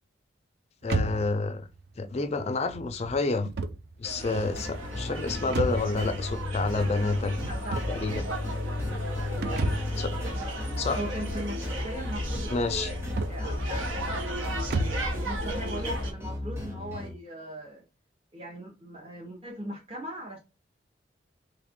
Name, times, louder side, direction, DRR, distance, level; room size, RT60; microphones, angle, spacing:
voice 1, 0.8-1.7 2.0-3.5 4.0-7.4 7.9-8.3 10.0-10.1 10.8-11.0 12.5-12.9, left 3 dB, 30° left, 0.3 m, -29 dB
sound 1, 0.8-15.2, right 3 dB, 55° right, 0.4 m, -36 dB
sound 2, 4.0-16.1, equal, 90° right, 0.8 m, -34 dB
sound 3, 4.3-17.1, left 2 dB, 15° right, 1.1 m, -36 dB
voice 2, 7.4-8.0 9.3-9.9 10.2-10.5 11.0-12.5 13.3-14.3 15.1-17.8 18.3-20.4, equal, 30° right, 0.8 m, -39 dB
3.3 x 2.4 x 3.5 m
head